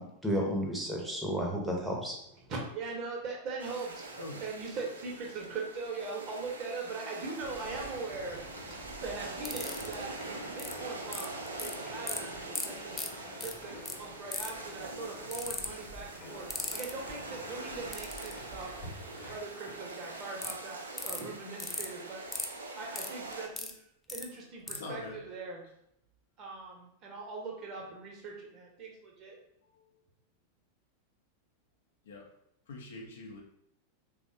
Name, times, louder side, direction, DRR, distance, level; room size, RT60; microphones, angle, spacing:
voice 1, 0.0-2.2, equal, 5° right, -1 dB, 0.7 m, -32 dB
voice 2, 2.5-8.7 9.0-11.3 11.6-12.9 13.4-16.4 16.7-18.7 19.3-22.2 22.8-23.7 24.1-25.6 26.4-29.4, right 3 dB, 35° right, 0 dB, 0.7 m, -41 dB
sound 1, 3.6-23.5, right 3 dB, 75° right, 0.4 m, -44 dB
sound 2, 7.4-19.4, left 1 dB, 30° left, 0.9 m, -49 dB
sound 3, 9.5-9.9 10.6-10.7 11.1-11.7 12.1-12.2 12.6-12.7 12.9-13.1 13.4-13.5 13.9-14.0 14.3-14.6 15.3-15.7 16.5-16.9 17.9-18.3 20.4-20.5 21.0-21.2 21.6-21.9 22.3-22.5 23.0-23.7 24.1-24.2 24.7-24.8, left 3 dB, 15° left, 0.3 m, -36 dB
voice 3, 24.7-25.2 29.7-29.9 32.1-32.3 32.7-33.4, left 3 dB, 60° left, 1 dB, 0.5 m, -43 dB
3.3 x 2.1 x 2.6 m, 0.74 s
figure-of-eight pair, 90°, 0 cm